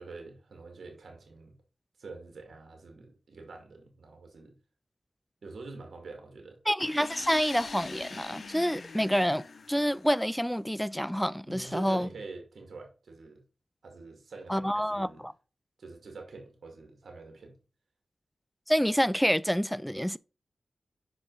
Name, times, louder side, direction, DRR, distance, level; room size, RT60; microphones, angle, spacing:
voice 1, 0.0-1.5 2.0-4.5 5.4-6.6 11.5-13.4 13.8-15.2 15.8-17.5, right 3 dB, 80° right, 2.0 m, -45 dB
voice 2, 6.7-12.1 14.5-15.3 18.7-20.2, equal, 5° left, 0.3 m, -28 dB
sound 1, 6.8-10.6, left 4 dB, 70° left, 0.7 m, -44 dB
5.9 x 5.0 x 3.9 m
cardioid pair, 40°, 0 cm